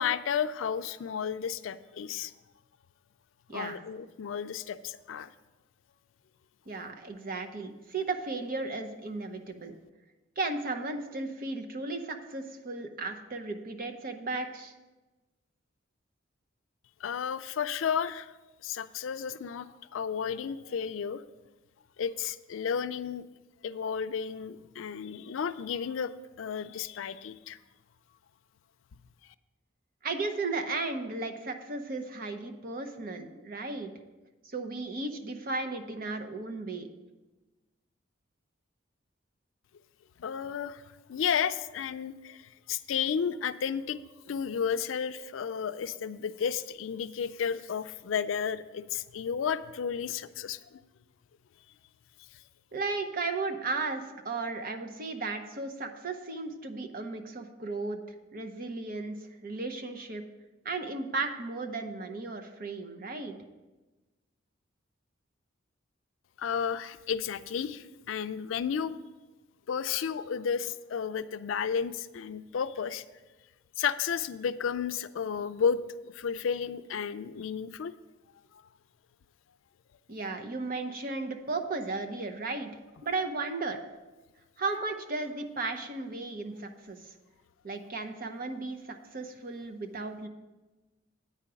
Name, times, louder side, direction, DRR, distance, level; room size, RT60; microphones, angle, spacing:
voice 1, 0.0-2.3 3.5-5.3 17.0-18.3 18.6-21.2 22.0-23.2 23.6-27.6 40.2-40.8 41.1-50.8 66.4-68.9 69.7-73.0 73.8-75.8 76.1-77.9, left 7 dB, 85° left, 13 dB, 0.4 m, -32 dB
voice 2, 3.5-3.8 6.7-9.7 10.4-14.7 30.0-33.9 34.5-36.9 52.7-58.0 58.3-60.2 60.6-63.3 80.1-82.7 83.0-83.8 84.6-87.0 87.6-90.3, right 3 dB, 45° right, 6 dB, 0.8 m, -35 dB
9.0 x 4.9 x 6.9 m, 1.2 s
head